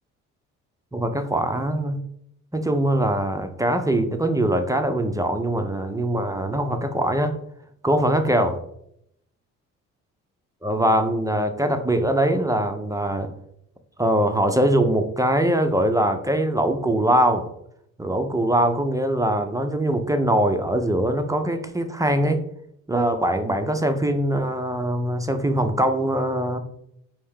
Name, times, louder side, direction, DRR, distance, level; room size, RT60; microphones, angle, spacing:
voice 1, 0.9-2.0 2.5-7.4 7.8-8.6 10.6-13.3 14.0-17.5 18.0-22.4 22.9-26.6, right 1 dB, 10° right, 6 dB, 0.5 m, -22 dB
4.3 x 2.8 x 3.6 m, 0.73 s
hypercardioid pair, 55°, 37 cm